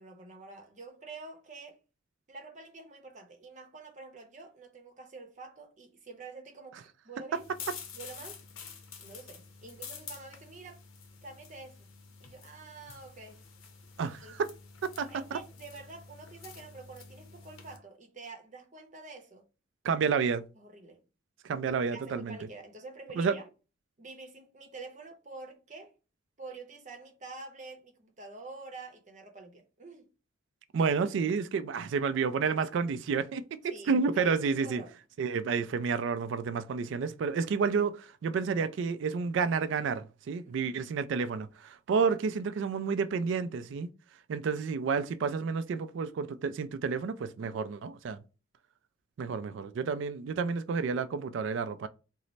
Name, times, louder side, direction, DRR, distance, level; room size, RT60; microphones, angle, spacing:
voice 1, 0.0-1.8 2.3-7.5 7.9-8.4 9.0-10.8 11.2-11.9 12.2-13.5 14.1-14.3 15.0-19.4 20.6-21.0 21.9-23.5 24.0-25.9 26.4-30.1 33.7-34.9 40.5-40.7, right 3 dB, 40° right, 0.7 m, -47 dB
sound 1, 7.3-17.8, left 6 dB, 85° left, 0.7 m, -48 dB
voice 2, 14.0-14.5 15.0-15.4 19.8-20.4 21.4-22.4 23.2-23.3 30.7-34.8 35.2-43.9 44.3-48.2 49.2-51.9, right 5 dB, 65° right, 0.3 m, -30 dB
3.1 x 2.0 x 3.9 m
head